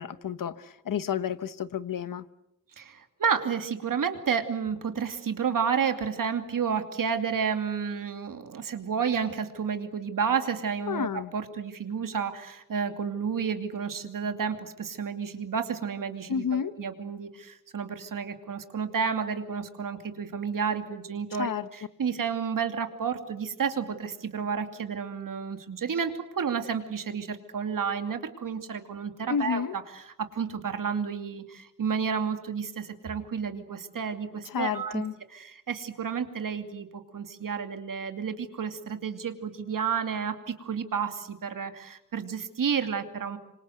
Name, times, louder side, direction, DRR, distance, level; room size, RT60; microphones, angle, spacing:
voice 1, 0.0-2.3 10.9-11.3 16.3-16.7 21.4-21.7 29.3-29.7 34.4-35.1, left 8 dB, 85° left, 1.1 m, -30 dB
voice 2, 2.8-11.1 11.3-29.7 29.9-30.0 30.3-35.0 35.3-43.4, right 6 dB, 80° right, 2.7 m, -31 dB
26.5 x 26.0 x 8.0 m
wide cardioid pair, 85°, 32 cm